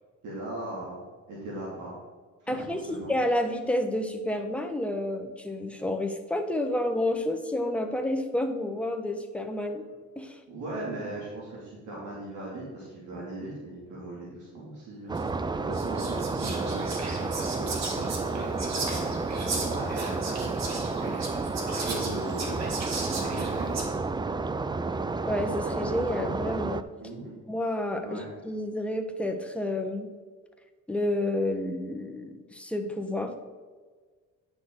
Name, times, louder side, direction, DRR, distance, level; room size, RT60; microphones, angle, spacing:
voice 1, 0.2-1.9 2.4-3.1 9.6-9.7 10.5-22.6 23.1-24.0 27.0-27.4 28.0-28.3, right 2 dB, 80° right, -5 dB, 2.4 m, -39 dB
voice 2, 2.5-9.8 10.2-10.4 25.2-26.8 27.5-30.1 30.9-33.4, left 1 dB, 5° left, 4 dB, 1.1 m, -30 dB
sound 1, 15.1-26.8, right 3 dB, 15° right, 0.4 m, -31 dB
Whispering, 15.2-15.3 15.7-23.8, right 3 dB, 60° right, 2.0 m, -36 dB
9.6 x 6.2 x 3.8 m, 1.4 s
cardioid pair, 90°, 30 cm